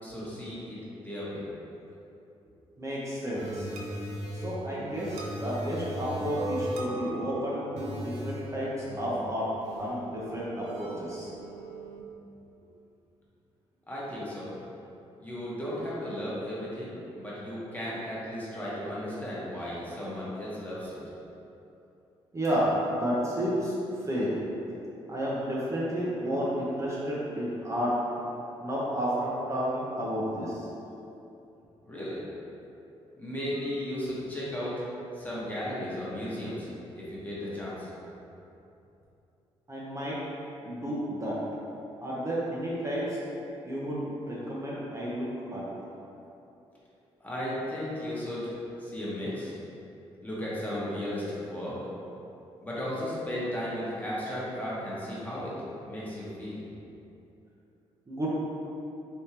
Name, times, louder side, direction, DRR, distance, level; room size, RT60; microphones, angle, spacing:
voice 1, 0.0-0.8 1.0-1.4 13.9-14.5 15.2-21.0 31.8-32.2 33.2-34.8 35.1-37.9 47.2-48.5 48.8-49.5 50.2-51.8 52.6-55.5 55.8-56.6, equal, 15° left, -8 dB, 1.0 m, -35 dB
voice 2, 2.8-3.7 4.3-9.5 9.8-11.3 22.3-23.7 24.0-24.4 25.1-27.9 28.6-30.7 39.7-40.2 40.6-41.4 42.0-43.2 43.7-45.7 58.1-58.3, equal, 30° right, -7 dB, 0.7 m, -31 dB
sound 1, 3.3-12.0, right 1 dB, 80° right, 0.5 m, -38 dB
3.5 x 2.6 x 2.8 m, 2.8 s
cardioid pair, 75°, 11 cm